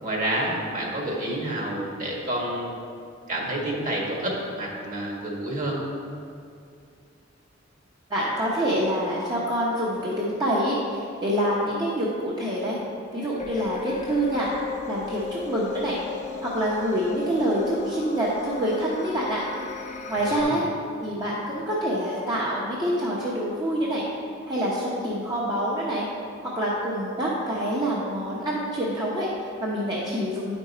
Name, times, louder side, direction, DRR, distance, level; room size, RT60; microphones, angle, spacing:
voice 1, 0.0-2.7 3.3-5.8 20.2-20.6, right 1 dB, 45° right, -3 dB, 1.6 m, -29 dB
voice 2, 8.1-12.8 13.1-14.5 14.9-16.0 16.4-19.5 20.1-20.6 21.0-24.1 24.5-26.1 26.4-30.5, equal, 20° right, -7 dB, 0.9 m, -26 dB
sound 1, 13.4-20.4, left 6 dB, 35° left, 0.4 m, -37 dB
9.2 x 5.3 x 4.2 m, 2.4 s
head